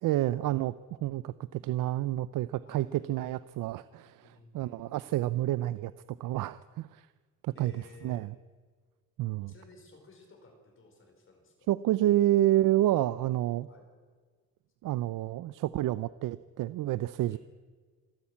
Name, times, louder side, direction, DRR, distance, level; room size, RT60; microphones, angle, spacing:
voice 1, 0.0-0.7 1.0-5.9 6.2-7.1 7.4-8.3 9.2-9.5 11.7-13.7 14.8-17.4, right 14 dB, 90° right, 16 dB, 0.6 m, -29 dB
voice 2, 4.2-4.9 7.5-8.3 9.5-11.7 13.7-13.9 17.3-17.4, left 3 dB, 40° left, 3 dB, 4.8 m, -55 dB
27.0 x 11.5 x 8.6 m, 1.5 s
cardioid pair, 180°, 31 cm